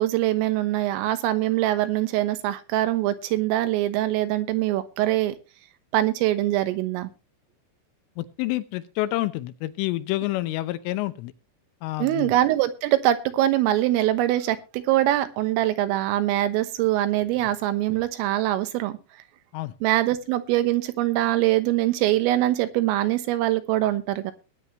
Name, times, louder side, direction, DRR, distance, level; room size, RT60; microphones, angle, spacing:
voice 1, 0.0-5.4 5.9-7.1 12.0-19.0 19.8-24.3, right 14 dB, 85° right, 3.7 m, -23 dB
voice 2, 8.2-11.3 11.8-12.3 19.5-19.7, left 17 dB, 80° left, 3.3 m, -28 dB
19.5 x 9.5 x 3.0 m
omnidirectional pair, 5.8 m